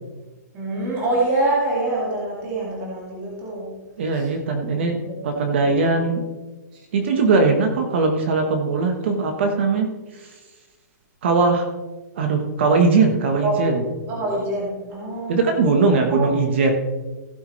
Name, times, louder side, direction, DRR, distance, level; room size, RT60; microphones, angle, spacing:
voice 1, 0.5-3.7 4.1-4.3 4.6-4.7 5.0-5.1 5.8-5.9 6.7-6.8 13.4-13.7 14.1-15.6 16.1-16.3, right 2 dB, 20° right, -5 dB, 2.2 m, -25 dB
voice 2, 4.0-5.0 5.2-6.2 6.9-9.9 10.2-10.3 11.2-11.7 12.2-13.8 15.3-16.7, right 4 dB, 40° right, 5 dB, 1.2 m, -20 dB
16.0 x 8.1 x 3.2 m, 1.2 s
hypercardioid pair, 180°, 10 cm